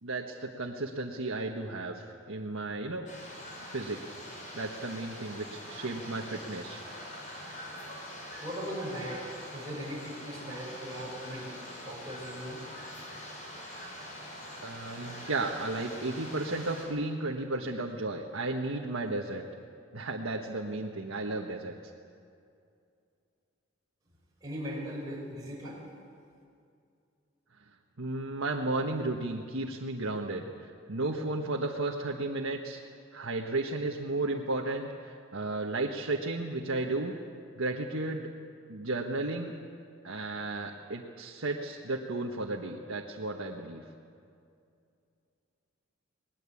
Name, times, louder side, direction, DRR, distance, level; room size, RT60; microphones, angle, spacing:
voice 1, 0.0-3.1 3.7-4.0 4.5-6.8 14.6-19.4 19.9-21.7 28.0-32.8 33.1-37.1 37.6-38.3 38.7-39.5 40.0-43.8, right 2 dB, 75° right, 0 dB, 1.5 m, -34 dB
sound 1, 3.1-16.9, left 1 dB, 35° left, 6.1 m, -44 dB
voice 2, 8.4-11.5 11.8-12.7 24.4-25.8, equal, 20° right, -6 dB, 5.5 m, -39 dB
21.5 x 20.0 x 8.6 m, 2.4 s
head